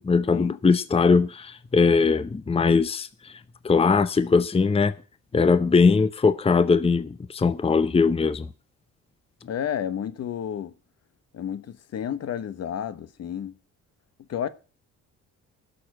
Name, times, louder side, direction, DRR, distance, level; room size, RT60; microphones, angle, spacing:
voice 1, 0.0-3.3 3.6-4.9 5.3-8.5, left 4 dB, 20° left, 0.7 m, -21 dB
voice 2, 9.4-10.7 11.3-13.5 14.3-14.5, left 9 dB, 55° left, 1.0 m, -31 dB
11.0 x 7.1 x 7.7 m
cardioid pair, 90°, 30 cm